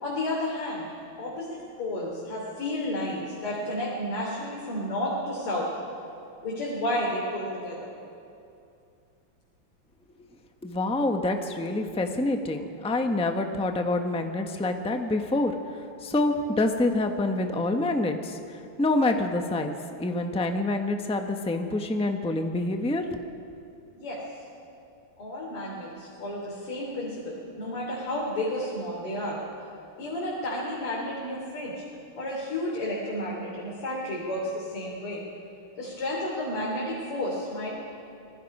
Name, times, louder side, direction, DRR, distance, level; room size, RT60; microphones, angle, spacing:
voice 1, 0.0-5.7 6.4-7.9 24.0-24.2 25.2-29.4 30.0-31.8 32.2-35.2 35.8-37.8, left 1 dB, 85° left, -4 dB, 4.1 m, -32 dB
voice 2, 10.6-15.5 16.0-23.2, left 2 dB, 5° left, 5 dB, 0.5 m, -27 dB
25.5 x 20.0 x 5.5 m, 2.6 s
omnidirectional pair, 2.4 m